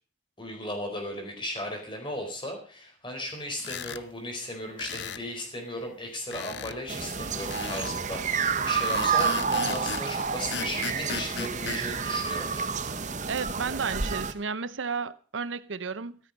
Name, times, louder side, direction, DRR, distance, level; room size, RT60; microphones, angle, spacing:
voice 1, 0.4-12.7, left 1 dB, 25° left, 4.6 m, -36 dB
sound 1, 3.6-4.0 4.8-5.3 6.3-6.8 7.5-8.0 8.8-10.1 10.5-11.8, left 6 dB, 65° left, 0.7 m, -36 dB
sound 2, 6.9-14.3, right 5 dB, 40° right, 1.0 m, -29 dB
voice 2, 13.3-16.2, right 5 dB, 85° right, 0.8 m, -32 dB
14.0 x 13.5 x 5.3 m
head